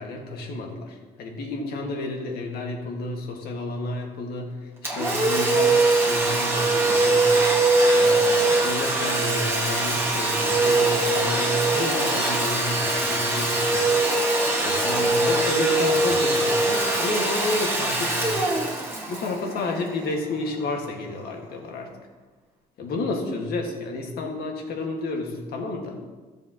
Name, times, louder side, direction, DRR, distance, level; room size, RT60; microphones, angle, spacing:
voice 1, 0.0-7.5 7.9-13.7 14.6-18.6 19.1-21.9 22.8-25.9, left 2 dB, 65° left, 1 dB, 1.9 m, -31 dB
Domestic sounds home sounds, 4.8-20.3, right 2 dB, 15° right, 1.8 m, -22 dB
14.0 x 7.1 x 3.0 m, 1.3 s
cardioid pair, 110°, 17 cm